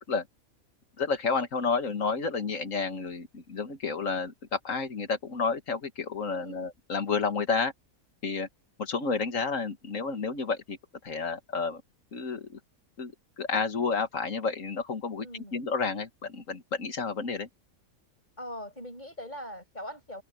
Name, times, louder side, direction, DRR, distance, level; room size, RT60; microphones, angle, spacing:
voice 1, 1.0-7.7 8.2-8.5 8.8-10.8 11.0-11.8 12.1-12.6 13.0-13.1 13.4-17.5, left 4 dB, 65° left, 2.1 m, -30 dB
voice 2, 6.3-6.7 15.2-15.6 18.4-20.2, equal, 30° left, 7.2 m, -41 dB
omnidirectional pair, 1.5 m